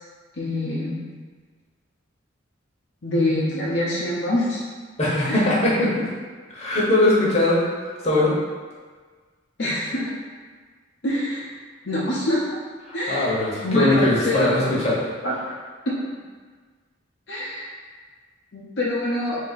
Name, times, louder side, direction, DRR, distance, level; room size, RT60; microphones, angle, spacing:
voice 1, 0.4-1.0 3.0-4.6 5.3-5.4 9.6-10.1 11.0-11.4 11.8-12.6 12.9-13.3 13.6-14.7 15.2-15.4 17.3-17.7 18.5-19.4, left 1 dB, 60° left, -7 dB, 0.7 m, -25 dB
voice 2, 5.0-6.1 6.5-8.3 12.9-15.0, left 1 dB, 35° left, -7 dB, 1.0 m, -21 dB
3.5 x 2.7 x 4.0 m, 1.5 s
head